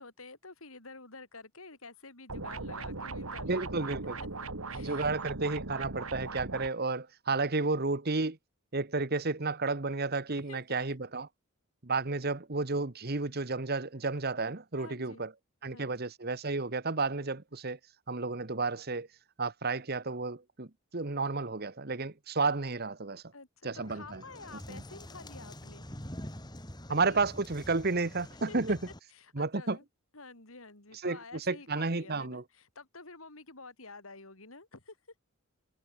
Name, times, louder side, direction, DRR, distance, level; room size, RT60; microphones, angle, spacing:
voice 1, 0.0-4.3 4.7-5.2 5.5-5.6 7.5-7.7 10.3-11.0 14.8-15.2 15.7-15.9 23.3-26.0 26.9-27.2 28.5-28.8 29.1-29.8 30.1-35.0, left 3 dB, 80° left, 4.7 m, -50 dB
sound 1, 2.3-6.7, right 3 dB, 85° right, 2.5 m, -39 dB
voice 2, 3.4-4.2 4.8-8.4 8.7-11.3 11.8-15.3 15.6-17.8 18.1-19.1 19.4-20.7 20.9-23.2 23.6-24.2 24.7-24.8 26.9-28.8 29.3-29.8 31.0-32.4, right 3 dB, 45° right, 1.4 m, -32 dB
sound 2, 23.7-29.0, left 1 dB, 20° left, 4.3 m, -46 dB
head